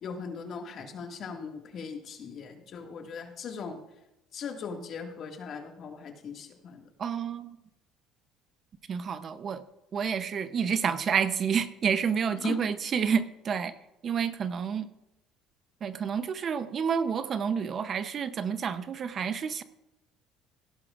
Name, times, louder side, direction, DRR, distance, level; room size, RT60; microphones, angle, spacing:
voice 1, 0.0-3.8 4.3-6.9 12.4-12.7, left 5 dB, 50° left, 3 dB, 1.9 m, -39 dB
voice 2, 7.0-7.6 8.9-9.6 9.9-13.7 14.0-14.9 15.8-19.6, right 7 dB, 40° right, 12 dB, 0.7 m, -29 dB
16.5 x 11.0 x 2.5 m, 0.92 s
cardioid pair, 110°, 0 cm